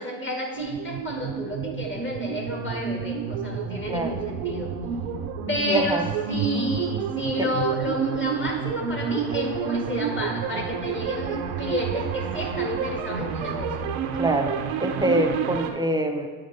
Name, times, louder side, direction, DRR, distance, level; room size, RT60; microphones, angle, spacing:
voice 1, 0.0-4.7 5.5-6.0 6.3-13.9, left 1 dB, 25° left, 1 dB, 1.8 m, -31 dB
sound 1, 0.5-15.7, right 7 dB, 75° right, 0.9 m, -29 dB
voice 2, 3.9-4.2 5.7-6.1 7.4-7.5 14.1-16.3, right 1 dB, 10° right, 4 dB, 0.7 m, -25 dB
9.0 x 3.2 x 5.3 m, 1.5 s
hypercardioid pair, 70°, 50 cm